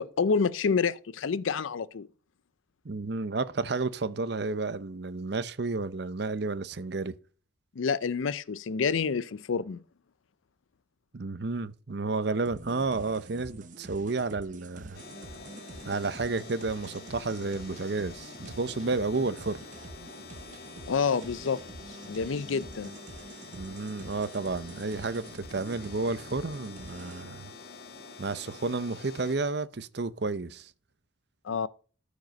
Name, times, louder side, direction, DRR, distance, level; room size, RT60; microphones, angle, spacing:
voice 1, 0.0-2.1 7.8-9.8 20.9-21.6 21.9-22.9 31.4-31.7, left 5 dB, 85° left, 0.5 m, -28 dB
voice 2, 2.8-7.1 11.1-15.0 15.8-19.6 23.6-27.5 28.2-30.7, right 3 dB, 55° right, 0.7 m, -31 dB
sound 1, 12.4-27.2, right 2 dB, 40° right, 1.0 m, -47 dB
sound 2, 14.9-29.4, left 4 dB, 50° left, 1.4 m, -47 dB
13.5 x 5.1 x 5.2 m
head